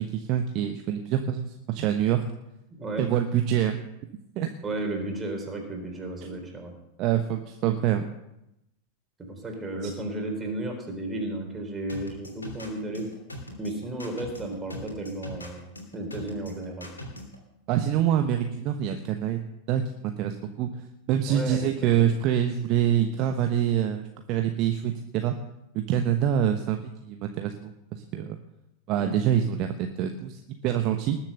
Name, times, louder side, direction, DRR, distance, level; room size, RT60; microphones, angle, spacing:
voice 1, 0.0-2.2 3.0-3.8 4.3-4.5 7.0-8.0 9.8-9.9 17.7-19.4 19.7-20.7 21.1-25.4 25.9-28.4 28.9-31.2, right 10 dB, 40° right, 6 dB, 1.0 m, -26 dB
voice 2, 4.6-6.7 9.2-13.1 13.6-15.6 15.9-16.9 21.3-21.6 22.0-22.1 29.0-29.2, right 2 dB, 15° right, 2 dB, 4.1 m, -33 dB
sound 1, 11.9-17.4, left 1 dB, 75° left, 3.1 m, -40 dB
19.5 x 7.5 x 6.6 m, 0.85 s
figure-of-eight pair, 90°, 0 cm